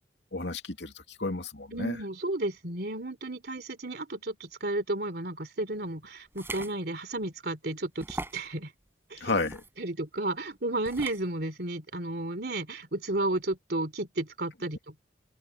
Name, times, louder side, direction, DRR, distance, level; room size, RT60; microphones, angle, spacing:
voice 1, 0.3-2.0 9.2-9.6, left 2 dB, 75° left, 2.6 m, -32 dB
voice 2, 1.7-8.7 9.1-9.4 9.8-15.0, right 2 dB, 60° right, 3.4 m, -33 dB
sound 1, 6.3-6.7 7.2-7.3 8.0-8.5 9.3-9.7 10.8-11.2, right 2 dB, 15° right, 6.0 m, -39 dB
open air
head